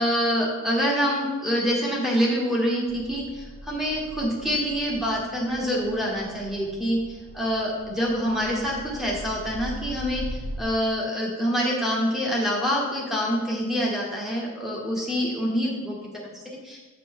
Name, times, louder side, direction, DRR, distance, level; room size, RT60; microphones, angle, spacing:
voice 1, 0.0-7.0 7.3-10.2 10.6-16.0 16.4-16.8, equal, ahead, -3 dB, 1.3 m, -26 dB
sound 1, 2.9-10.6, equal, 65° right, 0.7 m, -40 dB
6.7 x 5.9 x 3.7 m, 1.3 s
head